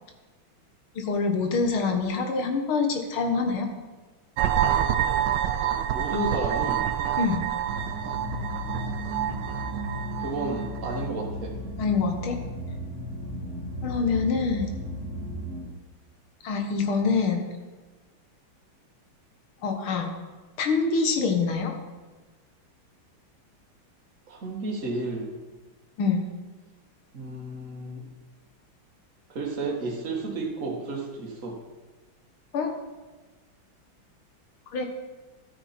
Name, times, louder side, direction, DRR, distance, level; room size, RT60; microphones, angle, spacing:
voice 1, 1.0-3.7 7.2-7.4 11.8-12.4 13.8-14.7 16.4-17.5 19.6-20.1 20.6-21.7 26.0-26.3 32.5-32.7 34.7-34.9, left 4 dB, 90° left, 4 dB, 2.2 m, -25 dB
sound 1, 4.4-11.1, right 10 dB, 70° right, 1.3 m, -27 dB
voice 2, 5.9-6.9 10.2-11.6 24.3-25.3 27.1-28.0 29.3-31.6, right 2 dB, 40° right, -1 dB, 2.0 m, -32 dB
sound 2, 7.6-15.6, equal, 85° right, 3.2 m, -35 dB
13.5 x 8.9 x 4.3 m, 1.3 s
omnidirectional pair, 2.2 m